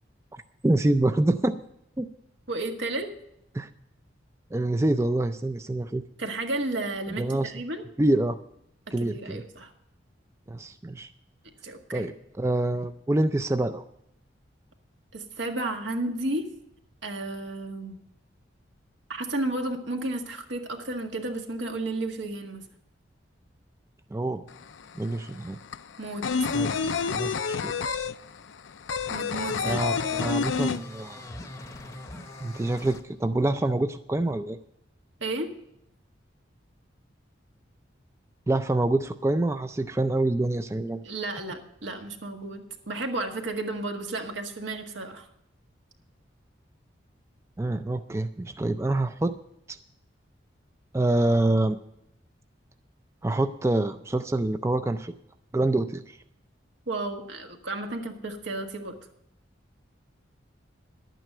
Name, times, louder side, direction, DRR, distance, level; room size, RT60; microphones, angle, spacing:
voice 1, 0.3-1.6 2.0-2.1 3.5-3.7 4.5-6.0 7.1-7.5 8.0-8.4 8.9-9.4 10.5-11.1 11.9-13.8 24.1-24.4 25.0-25.6 26.5-28.1 29.6-31.2 32.4-34.6 38.5-41.0 47.6-49.4 49.7-49.8 50.9-51.8 53.2-55.1 55.5-56.2, right 2 dB, 15° right, 10 dB, 0.3 m, -26 dB
voice 2, 2.5-3.1 6.2-7.8 9.0-9.7 11.6-12.1 15.1-16.4 17.0-18.0 19.1-22.6 26.0-26.2 29.1-29.9 35.2-35.5 41.0-45.3 56.9-58.9, right 2 dB, 80° right, 4 dB, 1.7 m, -32 dB
sound 1, 24.5-24.6 24.8-31.4 31.7-31.8 32.1-32.9, left 5 dB, 80° left, 0.5 m, -28 dB
sound 2, 29.4-33.0, left 1 dB, 15° left, 0.8 m, -43 dB
11.5 x 9.1 x 6.6 m, 0.77 s
head